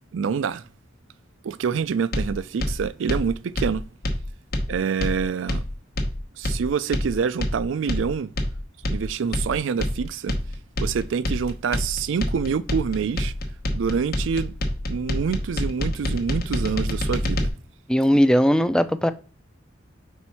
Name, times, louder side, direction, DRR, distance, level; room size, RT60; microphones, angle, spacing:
voice 1, 0.1-0.7 1.4-3.8 4.7-5.6 6.4-8.3 8.9-10.4 10.8-13.3 13.7-14.6 14.9-17.5, right 6 dB, 80° right, 0.4 m, -26 dB
sound 1, 2.1-17.5, left 1 dB, 55° left, 0.9 m, -27 dB
voice 2, 17.9-19.1, equal, 5° left, 0.3 m, -18 dB
4.5 x 4.2 x 5.6 m
head